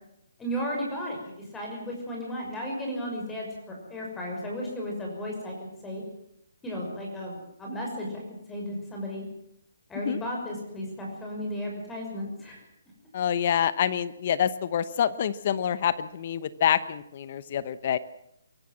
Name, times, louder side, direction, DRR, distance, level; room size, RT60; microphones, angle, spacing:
voice 1, 0.4-5.5 5.8-6.0 6.6-9.3 9.9-12.6, equal, 10° left, -1 dB, 6.2 m, -34 dB
voice 2, 13.1-18.0, left 9 dB, 45° left, 16 dB, 0.9 m, -26 dB
23.0 x 15.0 x 7.5 m, 0.77 s
hypercardioid pair, 150°, 0 cm